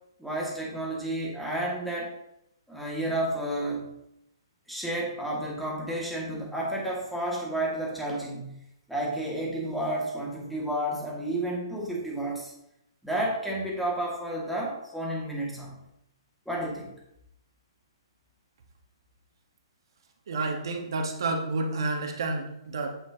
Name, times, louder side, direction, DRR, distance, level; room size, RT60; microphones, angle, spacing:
voice 1, 0.2-2.1 2.7-3.9 4.7-8.6 8.9-12.5 13.0-15.7 16.5-16.9, right 1 dB, ahead, -4 dB, 2.2 m, -31 dB
voice 2, 20.3-22.9, right 3 dB, 65° right, 3 dB, 1.5 m, -30 dB
8.7 x 7.5 x 3.0 m, 0.81 s
hypercardioid pair, 125°, 3 cm